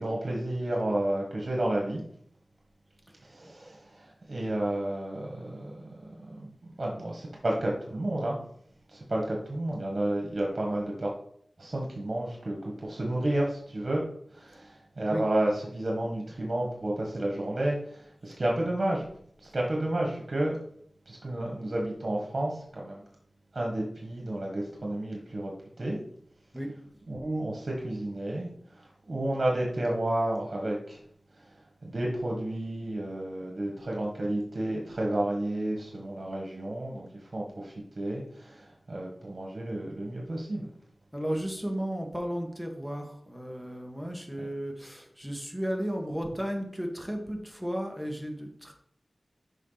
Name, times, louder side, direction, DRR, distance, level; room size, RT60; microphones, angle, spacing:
voice 1, 0.0-2.0 3.2-8.4 8.9-11.1 11.6-14.0 14.3-19.1 19.4-20.6 21.0-23.0 23.5-25.5 25.8-26.0 27.1-28.5 28.8-31.0 31.4-31.5 31.8-40.7, right 1 dB, 55° right, -2 dB, 1.6 m, -31 dB
voice 2, 41.1-48.7, equal, ahead, 2 dB, 1.7 m, -34 dB
7.2 x 5.5 x 4.1 m, 0.65 s
wide cardioid pair, 50°, 0 cm